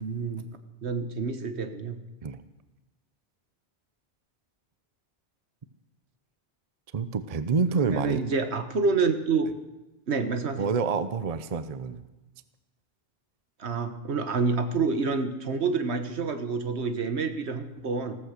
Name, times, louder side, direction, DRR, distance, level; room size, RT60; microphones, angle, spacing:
voice 1, 0.0-0.5 0.8-2.0 7.7-9.5 10.1-10.7 13.6-18.2, right 4 dB, 75° right, 9 dB, 1.5 m, -28 dB
voice 2, 6.9-8.2 10.6-12.0, right 5 dB, 40° right, 12 dB, 0.8 m, -27 dB
15.0 x 14.5 x 6.6 m, 1.1 s
omnidirectional pair, 1.1 m